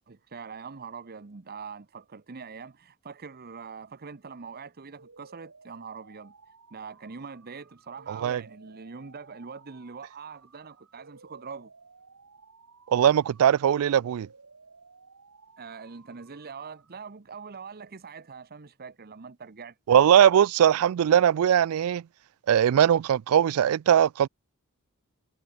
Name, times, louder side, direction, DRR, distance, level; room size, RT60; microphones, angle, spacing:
voice 1, 0.1-6.3 6.7-11.7 15.6-20.2, right 5 dB, 45° right, 0.8 m, -43 dB
sound 1, 5.0-17.0, right 4 dB, 85° right, 2.4 m, -56 dB
voice 2, 8.1-8.4 12.9-14.3 19.9-22.0 22.5-24.3, right 9 dB, 70° right, 0.3 m, -20 dB
head